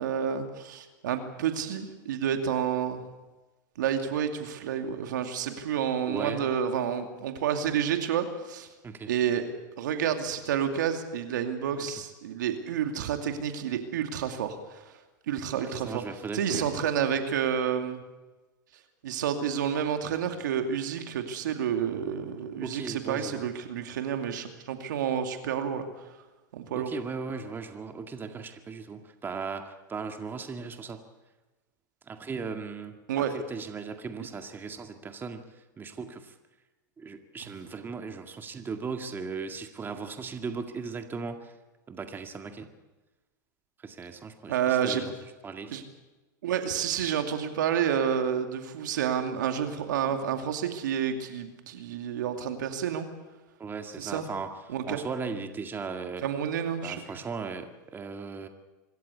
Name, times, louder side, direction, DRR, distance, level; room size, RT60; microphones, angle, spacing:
voice 1, 0.0-3.0 3.8-8.7 9.1-9.5 9.8-14.8 15.3-16.0 16.3-18.0 19.0-25.9 26.5-26.9 33.1-33.3 37.4-37.5 44.5-45.0 45.7-45.8 46.4-53.1 54.0-54.2 54.7-55.0 56.2-57.0, right 8 dB, 75° right, 6 dB, 2.5 m, -29 dB
voice 2, 6.0-6.5 8.8-9.1 11.8-11.9 15.5-16.8 22.6-23.4 26.7-31.0 32.0-36.3 37.0-41.5 41.9-42.7 43.8-45.1 45.4-45.7 53.6-56.2 56.8-58.5, right 5 dB, 20° right, 5 dB, 2.0 m, -37 dB
25.5 x 14.0 x 8.3 m, 1.2 s
hypercardioid pair, 110°, 10 cm